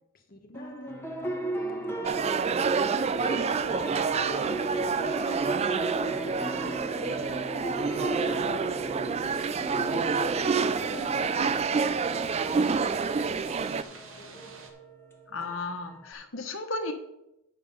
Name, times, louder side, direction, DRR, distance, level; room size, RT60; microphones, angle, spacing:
voice 1, 0.1-7.3 7.6-14.5, left 1 dB, 40° left, 4 dB, 1.5 m, -47 dB
sound 1, 0.5-16.1, right 2 dB, 10° left, 1.3 m, -36 dB
sound 2, 2.0-13.8, right 5 dB, 30° right, 0.3 m, -28 dB
sound 3, 9.2-14.7, right 4 dB, 65° right, 1.5 m, -48 dB
voice 2, 15.3-16.9, left 3 dB, 65° left, 6 dB, 1.3 m, -34 dB
9.7 x 6.4 x 5.4 m, 0.88 s
head